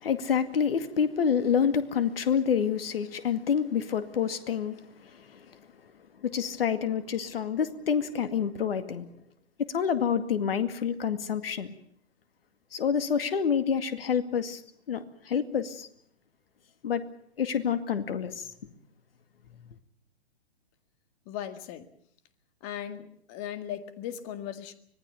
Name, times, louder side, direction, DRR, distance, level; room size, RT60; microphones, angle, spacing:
voice 1, 0.0-4.8 5.3-5.4 6.2-9.1 9.6-11.7 12.7-14.6 14.9-15.9 16.8-17.0 17.4-18.4, left 7 dB, 60° left, 10 dB, 2.3 m, -27 dB
voice 2, 21.3-21.9 22.6-24.7, left 10 dB, 30° left, 10 dB, 1.9 m, -38 dB
25.0 x 19.5 x 6.9 m, 0.66 s
figure-of-eight pair, 125°, 33 cm